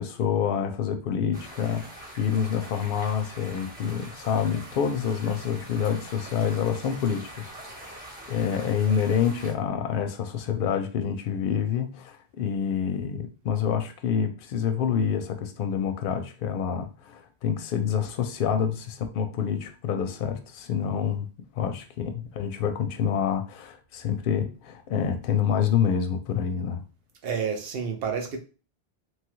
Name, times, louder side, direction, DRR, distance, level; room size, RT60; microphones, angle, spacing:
voice 1, 0.0-7.9 8.3-21.3 21.5-26.8, left 8 dB, 65° left, 0.7 m, -27 dB
sound 1, 1.3-9.5, right 1 dB, 10° right, 1.0 m, -44 dB
voice 2, 27.2-28.4, right 6 dB, 70° right, 0.8 m, -29 dB
3.1 x 2.3 x 3.0 m
omnidirectional pair, 1.1 m